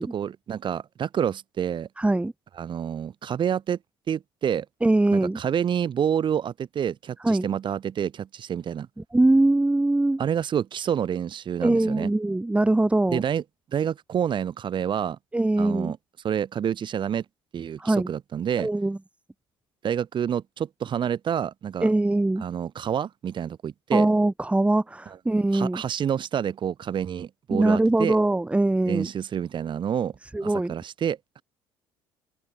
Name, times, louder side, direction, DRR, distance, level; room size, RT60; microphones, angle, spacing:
voice 1, 0.0-1.9 2.6-3.8 4.1-4.7 5.1-8.9 10.2-12.1 13.1-13.4 13.7-15.2 15.6-16.0 16.2-17.2 17.5-18.7 19.8-21.9 22.4-24.1 25.5-28.2 28.9-30.1 30.4-31.4, right 8 dB, 45° right, 7.6 m, -28 dB
voice 2, 2.0-2.3 4.8-5.4 7.2-7.5 9.1-10.2 11.6-13.2 15.3-15.9 17.8-18.1 18.6-19.0 21.8-22.4 23.9-25.8 27.5-29.1 30.3-30.7, right 2 dB, 10° right, 2.4 m, -22 dB
hypercardioid pair, 65°, 11 cm